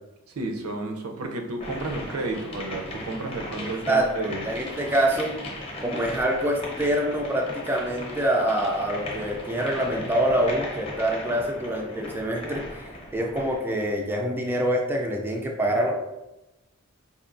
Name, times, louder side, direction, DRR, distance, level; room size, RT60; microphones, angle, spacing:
voice 1, 0.3-4.4, right 2 dB, 80° right, 0.6 m, -32 dB
sound 1, 1.6-13.7, left 1 dB, 25° left, 0.7 m, -37 dB
voice 2, 3.6-5.3 5.8-12.7 13.1-16.0, right 1 dB, 10° right, 0.3 m, -25 dB
4.2 x 2.7 x 2.5 m
head